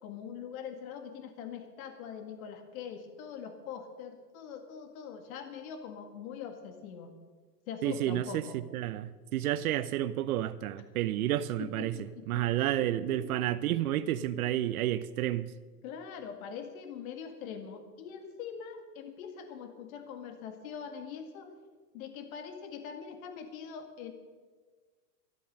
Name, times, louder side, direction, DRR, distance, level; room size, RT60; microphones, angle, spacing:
voice 1, 0.0-7.1 7.7-8.6 11.6-13.4 15.8-21.5 21.9-24.1, left 7 dB, 60° left, 7 dB, 1.9 m, -43 dB
voice 2, 7.8-15.5, right 13 dB, 65° right, 14 dB, 0.7 m, -31 dB
13.5 x 13.0 x 6.5 m, 1.4 s
hypercardioid pair, 130°, 48 cm